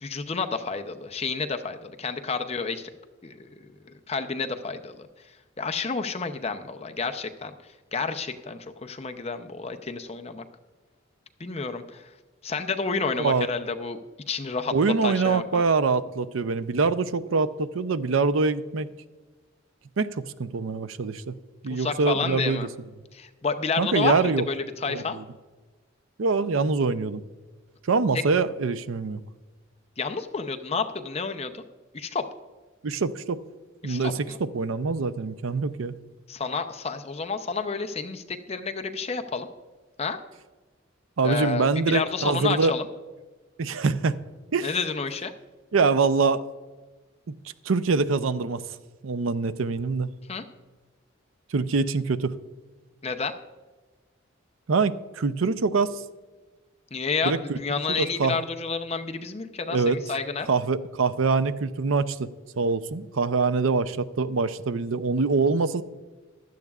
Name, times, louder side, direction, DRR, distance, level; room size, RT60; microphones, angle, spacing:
voice 1, 0.0-2.9 3.2-5.1 5.6-7.5 7.9-10.4 11.4-12.1 12.4-14.0 14.3-14.7 15.0-15.6 21.7-22.7 23.1-25.2 30.0-31.6 31.9-32.3 33.8-34.4 36.3-39.5 40.0-40.2 41.2-42.9 44.6-45.3 50.3-50.4 53.0-53.4 56.9-60.5, left 4 dB, 30° left, 7 dB, 0.6 m, -30 dB
voice 2, 14.7-18.9 20.0-21.4 21.6-22.7 23.8-24.4 24.9-25.2 26.2-27.2 27.9-29.2 32.8-33.4 33.8-36.0 41.2-42.7 43.6-44.2 44.5-44.7 45.7-46.4 47.3-47.4 47.7-48.6 49.0-50.1 51.5-52.4 54.7-56.0 57.2-57.6 58.0-58.4 59.7-60.0 60.5-65.8, right 4 dB, 90° right, 13 dB, 0.6 m, -24 dB
15.5 x 12.0 x 2.4 m, 1.3 s
head